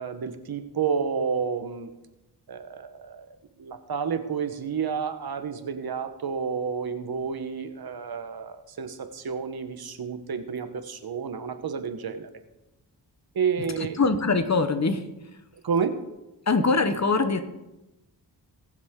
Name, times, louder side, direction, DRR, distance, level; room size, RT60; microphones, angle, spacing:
voice 1, 0.0-1.9 2.5-12.3 13.3-14.0 15.6-16.0, right 6 dB, 60° right, 9 dB, 1.1 m, -30 dB
voice 2, 14.0-15.0 16.5-17.4, left 4 dB, 40° left, 9 dB, 1.0 m, -22 dB
20.0 x 7.3 x 3.7 m, 0.98 s
wide cardioid pair, 85°, 41 cm